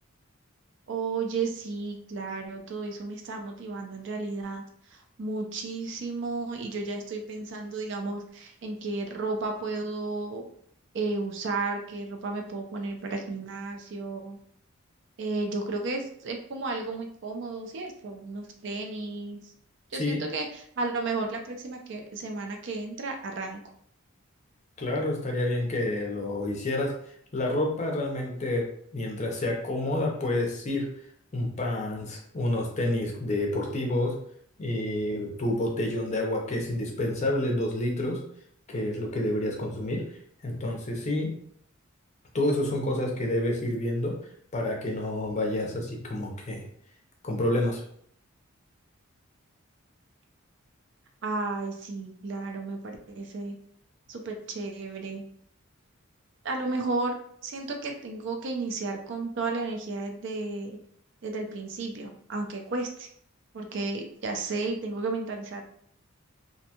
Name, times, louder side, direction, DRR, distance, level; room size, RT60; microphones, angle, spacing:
voice 1, 0.9-4.6 5.2-10.5 10.9-14.4 15.2-19.4 19.9-23.6 51.2-53.6 54.1-55.2 56.4-57.1 57.4-60.8 61.2-63.1 63.5-65.6, right 3 dB, 55° right, 3 dB, 0.4 m, -33 dB
voice 2, 24.8-26.9 27.3-28.7 28.9-30.9 31.3-34.2 34.6-38.2 38.7-40.1 40.4-41.3 42.3-44.2 44.5-46.6 47.2-47.8, left 1 dB, 35° left, 0 dB, 0.5 m, -28 dB
2.6 x 2.2 x 2.7 m, 0.65 s
head